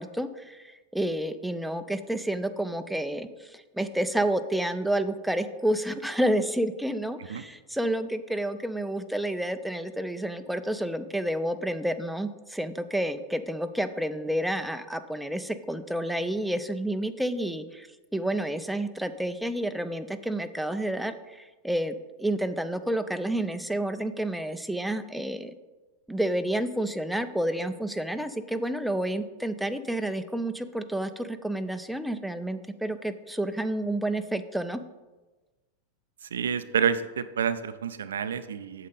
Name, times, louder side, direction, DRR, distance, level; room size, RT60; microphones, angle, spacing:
voice 1, 0.0-25.5 26.1-34.8, right 1 dB, ahead, 9 dB, 0.4 m, -30 dB
voice 2, 36.2-38.9, right 7 dB, 65° right, 12 dB, 0.4 m, -28 dB
8.4 x 7.4 x 4.0 m, 1.2 s
figure-of-eight pair, 90°, 0 cm